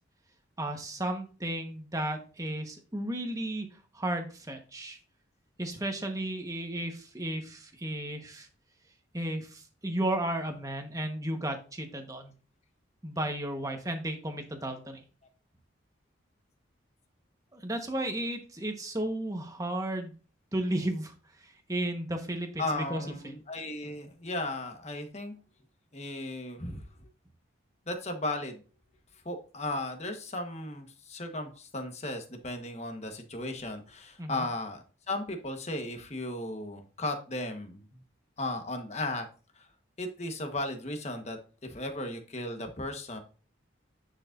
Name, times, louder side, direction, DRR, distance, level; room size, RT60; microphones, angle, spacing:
voice 1, 0.6-3.7 3.9-5.0 5.6-8.5 9.1-12.3 13.0-15.0 17.5-20.1 20.5-21.1 21.7-23.3 34.2-34.4, right 1 dB, 15° right, 4 dB, 1.2 m, -34 dB
voice 2, 22.6-25.3 25.9-26.8 27.9-28.6 29.2-38.0 38.4-39.3 39.6-39.7 40.0-43.2, left 2 dB, 35° left, 5 dB, 1.3 m, -36 dB
9.7 x 6.4 x 2.6 m, 0.35 s
head